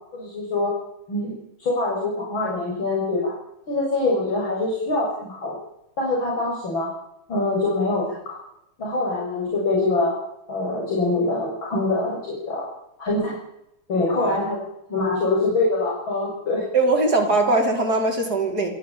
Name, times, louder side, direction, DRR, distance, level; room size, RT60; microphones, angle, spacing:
voice 1, 0.1-0.7 1.1-3.3 3.7-5.6 6.0-6.9 7.3-8.4 8.8-10.2 10.5-12.7 13.0-13.3 13.9-14.6 14.9-16.6, left 2 dB, 65° left, -4 dB, 7.6 m, -24 dB
voice 2, 14.0-14.4 16.7-18.7, right 2 dB, 45° right, 1 dB, 5.8 m, -21 dB
27.5 x 14.0 x 8.8 m, 0.81 s
omnidirectional pair, 2.3 m